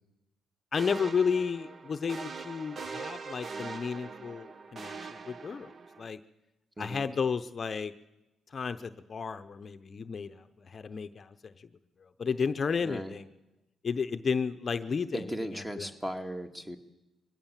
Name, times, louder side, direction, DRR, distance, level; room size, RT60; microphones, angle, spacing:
voice 1, 0.7-5.7 6.0-6.2 6.8-7.9 8.5-11.7 12.2-13.3 13.8-15.9, left 5 dB, 40° left, 10 dB, 0.8 m, -32 dB
sound 1, 0.8-6.1, right 4 dB, 40° right, 0.9 m, -42 dB
voice 2, 6.8-7.1 12.8-13.1 15.1-16.8, equal, 10° right, 6 dB, 1.8 m, -37 dB
22.5 x 16.5 x 7.4 m, 0.99 s
cardioid pair, 90°, 0 cm